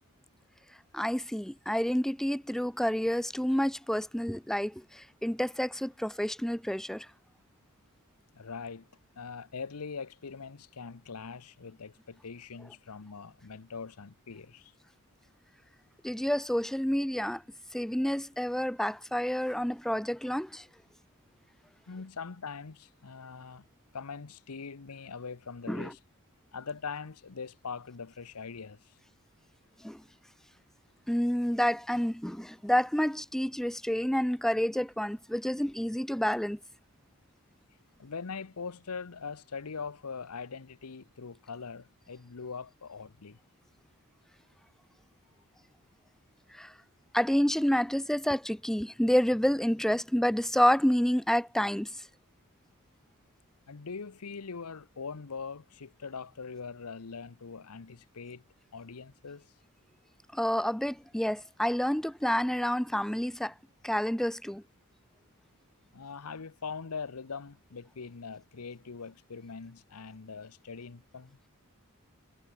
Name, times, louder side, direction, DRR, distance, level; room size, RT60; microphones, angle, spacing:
voice 1, 0.9-7.1 16.0-17.4 17.7-20.6 25.7-25.9 29.8-30.0 31.1-36.6 46.5-46.7 47.1-51.9 60.3-63.5 63.8-64.6, equal, ahead, 0.4 m, -29 dB
voice 2, 8.3-8.9 9.2-14.7 21.9-23.7 23.9-26.0 26.5-28.9 38.0-43.4 53.7-58.4 58.7-59.5 65.9-71.4, left 5 dB, 85° left, 0.9 m, -42 dB
head